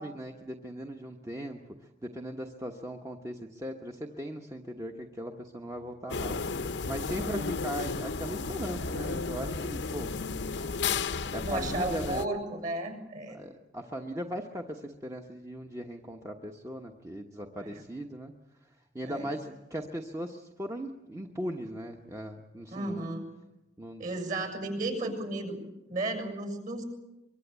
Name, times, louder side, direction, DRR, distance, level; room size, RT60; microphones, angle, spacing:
voice 1, 0.0-1.6 2.0-10.4 11.3-12.3 13.3-18.3 18.9-23.1 23.8-24.0, equal, 15° right, 3 dB, 1.2 m, -39 dB
sound 1, 6.1-12.3, left 4 dB, 65° left, 0.8 m, -33 dB
voice 2, 11.4-13.4 17.6-17.7 19.0-19.3 22.7-23.2 24.0-25.6 25.9-26.8, right 2 dB, 45° right, 5 dB, 7.2 m, -34 dB
24.0 x 23.5 x 8.3 m, 0.98 s
head